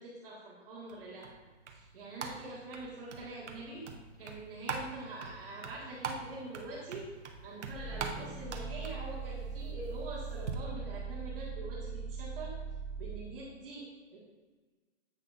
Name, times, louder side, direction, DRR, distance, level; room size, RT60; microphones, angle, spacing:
voice 1, 0.0-3.8 4.2-7.1 7.4-12.6 13.0-14.2, right 2 dB, 55° right, -5 dB, 1.6 m, -45 dB
sound 1, 0.9-10.6, right 5 dB, 80° right, 0.9 m, -44 dB
sound 2, 7.7-13.3, right 5 dB, 10° left, 0.8 m, -40 dB
8.1 x 5.6 x 2.5 m, 1.4 s
hypercardioid pair, 160°, 34 cm